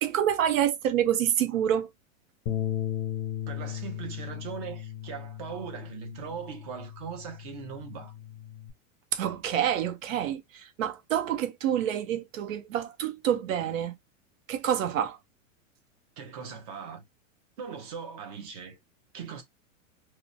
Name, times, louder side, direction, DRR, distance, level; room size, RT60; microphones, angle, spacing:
voice 1, 0.0-1.9 9.1-13.9 14.5-15.2, right 10 dB, 75° right, 0.8 m, -27 dB
Bass guitar, 2.5-8.7, left 11 dB, 45° left, 0.5 m, -36 dB
voice 2, 3.5-8.1 16.2-17.1 17.6-18.8 19.1-19.4, right 7 dB, 30° right, 0.6 m, -40 dB
2.9 x 2.1 x 2.5 m
supercardioid pair, 170°, 40 cm